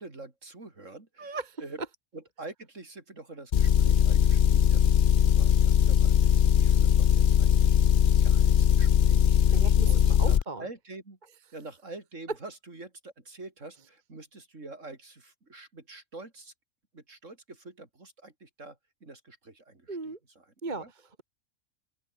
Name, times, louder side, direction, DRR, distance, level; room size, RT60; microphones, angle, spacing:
voice 1, 0.0-1.8 2.1-7.8 8.2-11.2 11.5-16.5 16.9-20.9, right 2 dB, 60° right, 4.4 m, -46 dB
voice 2, 1.2-1.6 9.5-10.6 19.9-20.2 20.6-21.2, right 3 dB, 30° right, 2.0 m, -37 dB
Motor vehicle (road) / Engine, 3.5-10.4, left 9 dB, 50° left, 0.6 m, -21 dB
open air
omnidirectional pair, 1.5 m